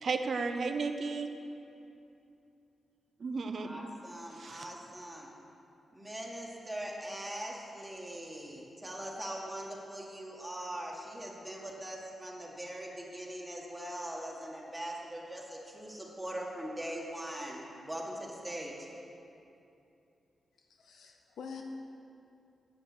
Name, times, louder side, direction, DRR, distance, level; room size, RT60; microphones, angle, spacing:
voice 1, 0.0-1.3 3.2-3.7 4.3-4.7, right 4 dB, 60° right, 7 dB, 0.7 m, -33 dB
voice 2, 3.6-5.3 5.9-18.9, right 1 dB, 10° right, -3 dB, 1.8 m, -41 dB
voice 3, 20.7-21.6, left 6 dB, 85° left, 3 dB, 0.6 m, -46 dB
9.0 x 7.9 x 6.2 m, 2.7 s
cardioid pair, 75°, 0 cm